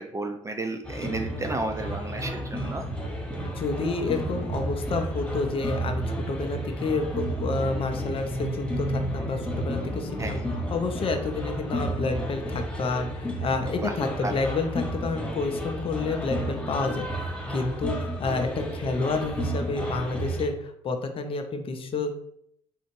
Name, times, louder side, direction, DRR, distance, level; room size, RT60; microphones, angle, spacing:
voice 1, 0.0-2.9 10.2-10.5 13.8-13.9 14.2-14.4, right 2 dB, 20° right, 4 dB, 0.4 m, -32 dB
sound 1, 0.8-20.5, right 1 dB, 5° left, 0.8 m, -32 dB
voice 2, 3.4-22.2, left 3 dB, 35° left, 6 dB, 0.5 m, -29 dB
3.7 x 2.5 x 3.0 m, 0.69 s
figure-of-eight pair, 45°, 17 cm